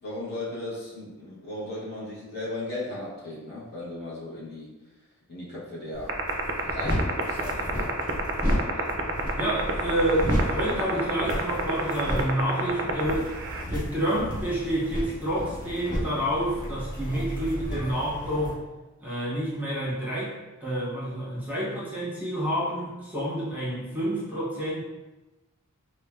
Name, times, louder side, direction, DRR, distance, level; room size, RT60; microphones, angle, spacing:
voice 1, 0.0-4.7 5.3-6.2 6.6-7.9, left 1 dB, 45° left, -6 dB, 0.7 m, -36 dB
sound 1, 5.9-18.5, equal, 20° left, 1.0 m, -32 dB
sound 2, 6.1-13.6, right 9 dB, 60° right, 0.3 m, -26 dB
voice 2, 9.3-13.3 13.7-18.6 19.0-20.3 20.6-24.8, equal, 10° right, -8 dB, 0.7 m, -28 dB
3.2 x 2.0 x 2.2 m, 1.1 s
head